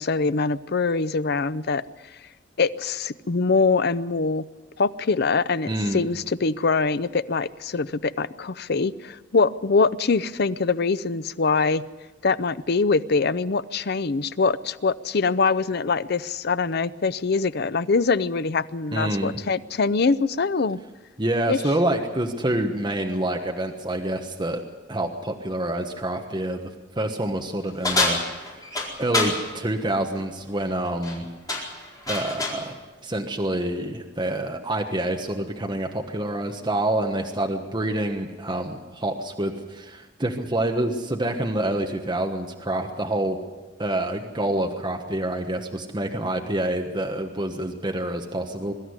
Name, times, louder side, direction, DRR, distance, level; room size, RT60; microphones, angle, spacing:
voice 1, 0.0-1.8 2.6-4.4 4.8-11.8 12.2-20.8 21.5-21.6, left 4 dB, 60° left, 14 dB, 0.6 m, -23 dB
voice 2, 5.7-6.0 18.9-19.3 21.2-24.6 24.9-28.7 29.0-31.3 32.1-32.7 33.0-43.4 43.8-48.7, right 1 dB, 25° right, 3 dB, 1.3 m, -27 dB
sound 1, 27.8-29.4 30.9-31.2 31.5-32.6, left 2 dB, 20° left, 4.4 m, -26 dB
23.0 x 12.5 x 9.7 m, 1.2 s
head